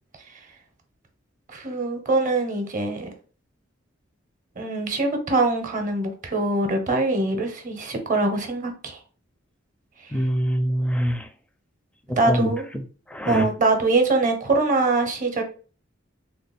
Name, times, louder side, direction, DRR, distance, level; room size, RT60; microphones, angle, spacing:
voice 1, 1.5-3.1 4.6-9.0 10.0-10.1 12.2-12.6 13.2-15.4, right 2 dB, 45° right, 5 dB, 0.7 m, -23 dB
voice 2, 10.1-11.3 12.3-12.8 13.1-13.4, equal, 5° left, 6 dB, 0.4 m, -24 dB
3.2 x 2.0 x 4.0 m, 0.38 s
head